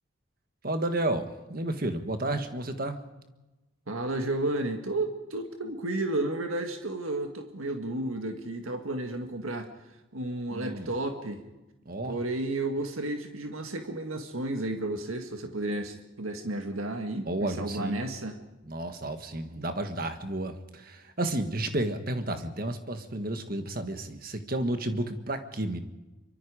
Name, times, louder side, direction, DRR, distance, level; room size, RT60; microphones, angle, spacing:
voice 1, 0.6-3.0 10.5-10.9 11.8-12.2 17.3-18.0 18.6-25.8, right 1 dB, 45° right, 8 dB, 1.6 m, -32 dB
voice 2, 3.9-9.7 10.1-11.4 12.0-18.4, right 2 dB, 90° right, 5 dB, 1.9 m, -32 dB
24.5 x 24.0 x 5.0 m, 1.1 s
head